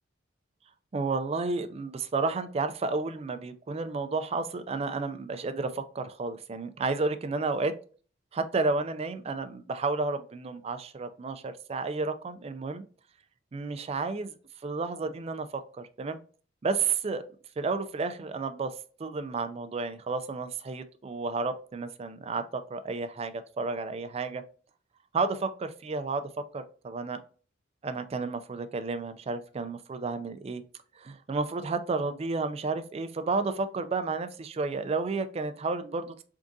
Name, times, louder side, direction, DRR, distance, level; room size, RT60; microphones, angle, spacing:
voice 1, 0.9-7.7 8.3-12.8 13.5-14.4 14.6-16.2 16.6-17.2 17.6-24.4 25.1-27.2 27.8-30.6 31.0-36.2, right 3 dB, 30° right, 10 dB, 0.3 m, -31 dB
3.6 x 3.6 x 2.6 m, 0.40 s
head